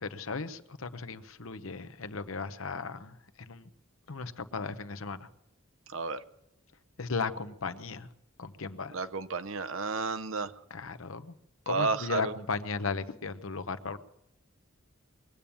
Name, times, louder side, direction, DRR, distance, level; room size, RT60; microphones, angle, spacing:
voice 1, 0.0-3.7 4.1-5.3 7.0-8.1 8.4-9.0 10.7-11.4 11.7-14.0, left 4 dB, 85° left, 11 dB, 0.9 m, -36 dB
voice 2, 5.9-6.2 8.9-10.5 11.7-12.3, right 4 dB, 75° right, 11 dB, 0.9 m, -32 dB
22.0 x 8.8 x 7.1 m, 0.81 s
head